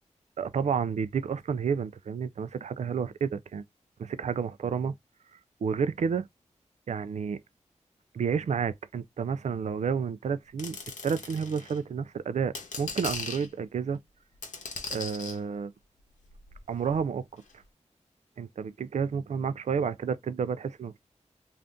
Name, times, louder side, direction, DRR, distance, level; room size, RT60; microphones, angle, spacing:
voice 1, 0.4-3.6 4.0-4.9 5.6-6.3 6.9-7.4 8.1-10.8 11.0-14.0 14.9-15.7 16.7-17.2 18.4-21.0, right 6 dB, 70° right, 0.4 m, -30 dB
sound 1, 10.6-11.8 12.4-13.5 14.4-15.4 16.2-17.0 17.5-17.6, left 4 dB, 90° left, 0.8 m, -39 dB
2.6 x 2.4 x 3.4 m
wide cardioid pair, 75°, 12 cm